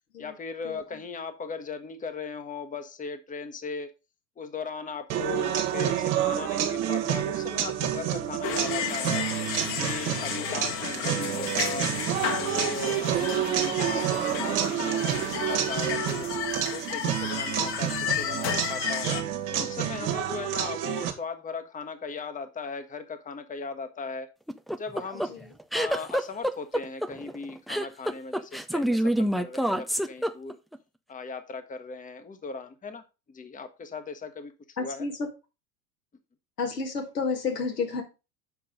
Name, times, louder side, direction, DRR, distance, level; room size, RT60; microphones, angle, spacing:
voice 1, 0.2-3.9 4.4-9.2 9.8-11.9 12.3-16.3 16.7-19.1 19.5-24.3 24.8-25.3 25.7-30.6 31.1-33.0 33.3-35.1, left 4 dB, 15° left, 1.1 m, -38 dB
sound 1, 5.1-21.1, right 11 dB, 65° right, 1.6 m, -29 dB
sound 2, 8.4-19.2, left 8 dB, 55° left, 1.6 m, -32 dB
sound 3, 24.5-30.8, equal, ahead, 0.3 m, -27 dB
voice 2, 34.8-35.3 36.6-38.0, left 4 dB, 90° left, 2.1 m, -30 dB
7.2 x 5.3 x 5.0 m
hypercardioid pair, 75°, 46 cm